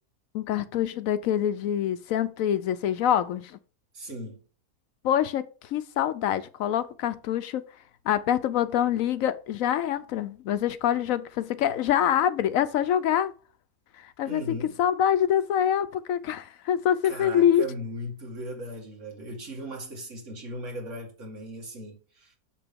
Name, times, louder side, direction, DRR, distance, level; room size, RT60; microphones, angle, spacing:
voice 1, 0.3-3.6 5.0-7.6 8.1-13.3 14.0-14.4 14.8-17.6, left 10 dB, 70° left, 0.9 m, -25 dB
voice 2, 3.9-4.4 14.3-14.8 17.0-22.4, equal, 55° right, 2.4 m, -38 dB
6.8 x 5.9 x 3.5 m
omnidirectional pair, 1.6 m